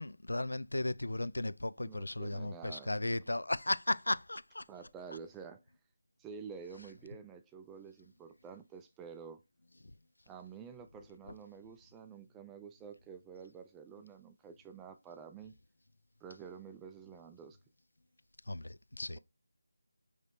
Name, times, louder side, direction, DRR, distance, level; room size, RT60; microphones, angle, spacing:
voice 1, 0.0-4.6 18.5-19.2, left 2 dB, 80° left, 0.3 m, -35 dB
voice 2, 1.8-3.0 4.7-5.6 6.2-9.4 10.3-15.5 16.2-17.6, right 6 dB, 10° right, 0.3 m, -49 dB
5.1 x 3.1 x 2.7 m
figure-of-eight pair, 165°, 0 cm